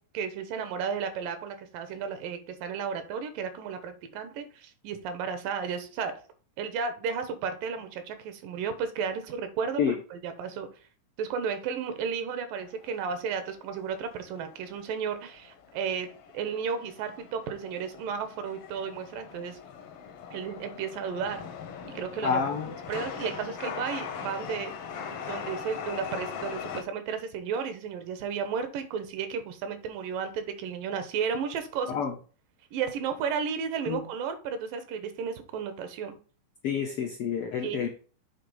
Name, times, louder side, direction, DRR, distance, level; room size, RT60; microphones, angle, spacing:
voice 1, 0.1-6.2 6.6-10.7 11.2-19.6 20.3-21.4 21.8-22.4 22.9-24.7 25.3-32.0 32.7-36.2 37.6-37.8, right 6 dB, 85° right, 9 dB, 2.8 m, -33 dB
Chatter / Subway metro underground, 12.6-26.8, left 6 dB, 70° left, 1.5 m, -41 dB
voice 2, 22.2-22.7 31.9-32.1 33.9-34.0 36.6-37.9, left 7 dB, 85° left, 3 dB, 1.2 m, -28 dB
8.5 x 3.4 x 5.5 m, 0.39 s
omnidirectional pair, 3.8 m